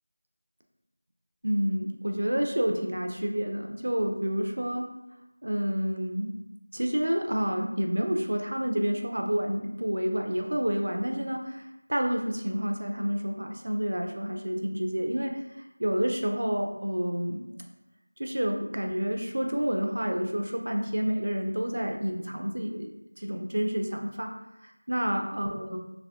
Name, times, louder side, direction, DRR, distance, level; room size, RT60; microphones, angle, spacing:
voice 1, 1.4-4.9 5.4-6.3 6.7-11.6 11.9-15.3 15.8-17.5 18.2-22.9 23.2-24.3 24.6-25.8, equal, 55° right, 3 dB, 0.4 m, -29 dB
3.0 x 2.6 x 2.8 m, 0.91 s
figure-of-eight pair, 180°, 0 cm